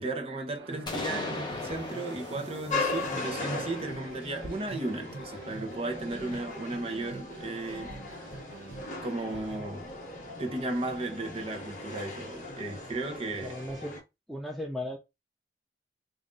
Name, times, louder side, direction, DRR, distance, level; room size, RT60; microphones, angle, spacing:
voice 1, 0.0-7.9 9.0-9.9 10.4-13.6, right 2 dB, 35° right, 0.9 m, -35 dB
sound 1, 0.6-9.7, right 3 dB, 75° right, 0.7 m, -46 dB
sound 2, 0.9-4.7, left 2 dB, 25° left, 0.9 m, -39 dB
sound 3, 2.7-14.0, left 3 dB, 45° left, 1.8 m, -38 dB
voice 2, 13.4-14.0 14.3-15.0, left 1 dB, ahead, 0.5 m, -36 dB
3.7 x 2.7 x 3.8 m
head